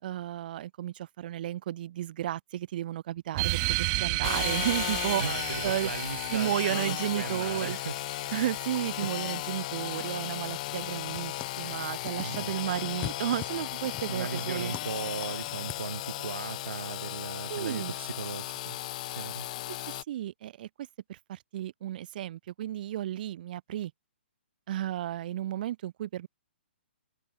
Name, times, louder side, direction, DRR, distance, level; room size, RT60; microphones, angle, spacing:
voice 1, 0.0-5.9 6.3-7.8 8.3-14.7 17.5-17.9 20.1-23.9 24.7-26.3, right 12 dB, 45° right, 3.3 m, -33 dB
sound 1, 3.3-8.4, right 28 dB, 30° right, 2.9 m, -33 dB
Engine / Sawing, 4.2-20.0, left 16 dB, 40° left, 0.6 m, -35 dB
voice 2, 5.2-8.0 9.0-9.1 12.2-12.5 14.1-18.8 19.1-19.5, right 6 dB, 80° right, 1.9 m, -37 dB
sound 2, 7.4-15.9, left 14 dB, 20° left, 6.7 m, -47 dB
hypercardioid pair, 145°, 6 cm